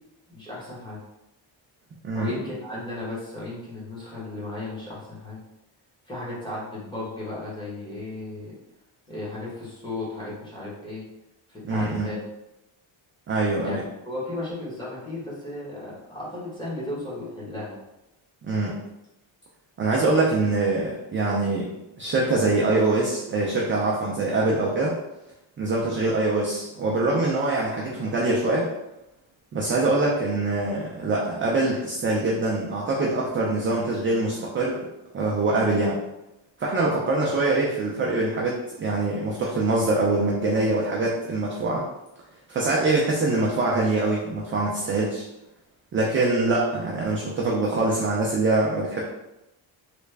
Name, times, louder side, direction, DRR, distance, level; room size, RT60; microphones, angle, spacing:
voice 1, 0.3-1.0 2.1-5.4 6.1-8.5 9.1-11.0 11.5-12.2 13.6-13.8 14.0-17.8, left 2 dB, 10° left, -8 dB, 1.1 m, -35 dB
voice 2, 11.6-12.1 13.3-13.8 18.4-18.8 19.8-21.7 22.0-24.9 25.6-28.7 29.5-34.8 35.1-36.0 36.6-41.8 42.5-45.2 45.9-49.0, right 2 dB, 30° right, -3 dB, 0.4 m, -24 dB
3.2 x 2.4 x 3.2 m, 0.92 s
cardioid pair, 155°, 47 cm